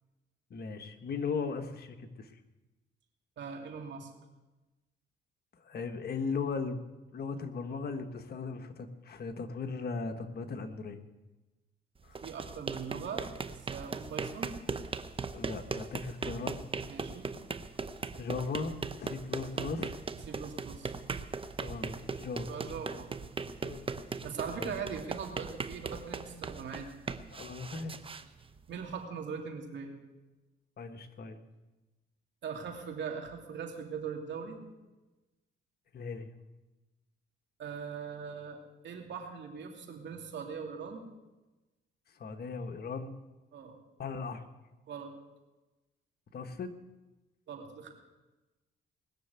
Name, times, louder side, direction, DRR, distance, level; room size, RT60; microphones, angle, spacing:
voice 1, 0.5-2.3 5.6-6.8 7.1-11.0 12.0-12.2 15.3-16.6 18.2-20.0 21.6-22.6 23.6-23.9 24.5-24.7 27.3-28.0 30.8-31.4 35.9-36.3 42.2-43.1 44.0-44.4 46.3-46.7, left 4 dB, 50° left, 7 dB, 1.3 m, -37 dB
voice 2, 3.4-4.1 12.2-14.5 16.8-17.3 20.3-20.9 22.4-23.1 24.2-26.9 28.7-29.9 32.4-34.6 37.6-41.0 43.5-43.7 44.9-45.1 47.5-47.9, right 6 dB, 65° right, 2 dB, 2.7 m, -41 dB
sound 1, 12.0-29.0, right 4 dB, 25° right, 0.9 m, -39 dB
20.0 x 6.8 x 8.1 m, 1.1 s
cardioid pair, 90°, 20 cm